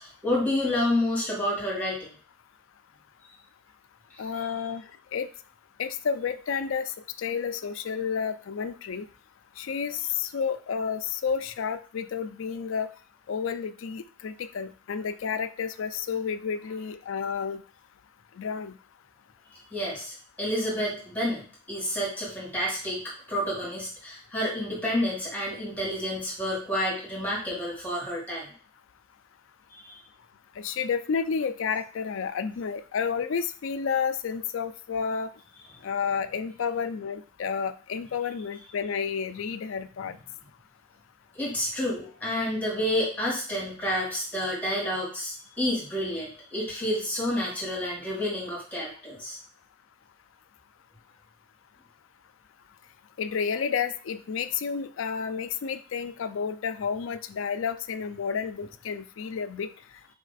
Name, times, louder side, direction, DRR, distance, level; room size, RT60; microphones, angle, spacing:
voice 1, 0.0-2.1 4.4-4.5 19.5-21.4 21.7-23.0 23.3-28.5 29.7-30.0 41.3-49.4, left 1 dB, 5° left, -5 dB, 1.8 m, -29 dB
voice 2, 4.2-4.8 5.1-5.3 5.8-6.9 7.2-9.0 9.6-12.9 13.3-17.6 18.4-18.8 30.6-35.3 35.8-40.2 53.2-59.7, left 6 dB, 65° left, 11 dB, 0.4 m, -30 dB
4.2 x 3.1 x 4.1 m, 0.41 s
head